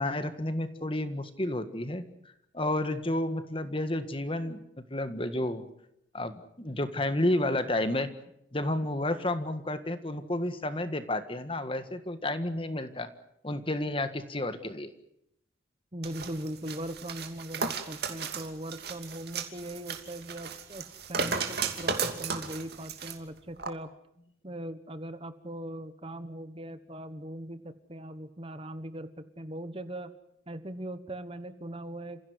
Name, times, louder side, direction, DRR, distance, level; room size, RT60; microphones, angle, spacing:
voice 1, 0.0-2.0 2.5-4.6 4.9-5.7 6.1-8.1 8.5-13.1 13.4-14.9, left 1 dB, 25° left, 10 dB, 1.7 m, -31 dB
voice 2, 15.9-23.9 24.4-29.1 29.4-30.1 30.5-32.3, right 1 dB, 30° right, 11 dB, 1.2 m, -40 dB
sound 1, 16.0-23.2 23.6-23.7, right 5 dB, 55° right, 2.8 m, -35 dB
29.5 x 16.5 x 9.6 m, 0.77 s
head